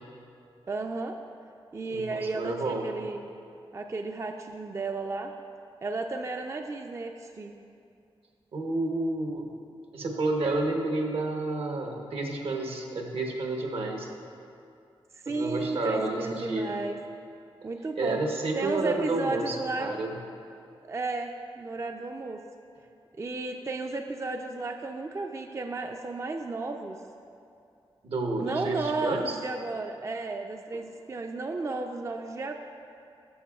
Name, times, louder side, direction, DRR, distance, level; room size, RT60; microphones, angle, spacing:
voice 1, 0.7-1.2 1.7-3.2 3.7-5.3 5.8-7.5 15.2-17.0 17.6-18.2 18.6-19.9 20.9-22.4 23.2-27.0 28.4-32.5, right 3 dB, 30° right, 4 dB, 0.4 m, -33 dB
voice 2, 1.9-2.9 8.5-9.5 9.9-14.1 15.3-16.7 18.0-20.1 28.0-29.4, right 2 dB, 75° right, 1 dB, 1.0 m, -30 dB
12.5 x 6.7 x 2.3 m, 2.6 s
cardioid pair, 65°, 10 cm